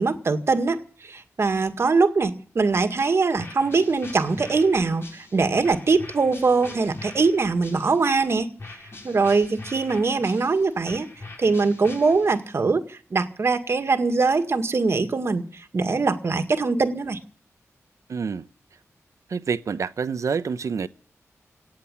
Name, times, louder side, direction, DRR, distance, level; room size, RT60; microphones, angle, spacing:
voice 1, 0.0-8.5 9.0-11.1 11.4-17.2, right 4 dB, 55° right, 1.9 m, -22 dB
sound 1, 3.4-8.2 8.6-12.6, left 2 dB, 50° left, 4.2 m, -43 dB
voice 2, 18.1-18.5 19.3-20.9, right 5 dB, 75° right, 0.9 m, -27 dB
18.0 x 7.8 x 9.9 m
wide cardioid pair, 120°, 5 cm